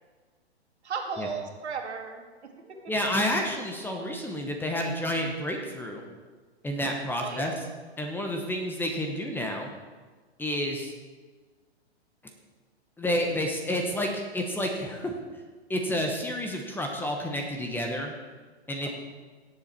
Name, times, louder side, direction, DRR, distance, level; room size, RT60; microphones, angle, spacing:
voice 1, 0.8-2.9 7.2-7.5, right 5 dB, 80° right, 3 dB, 2.2 m, -35 dB
voice 2, 2.9-6.0 6.6-7.5 8.0-9.7 10.4-10.9 13.0-15.2 15.7-18.2 18.7-18.9, equal, 5° left, 2 dB, 1.0 m, -30 dB
17.5 x 7.2 x 4.5 m, 1.4 s
hypercardioid pair, 135°, 33 cm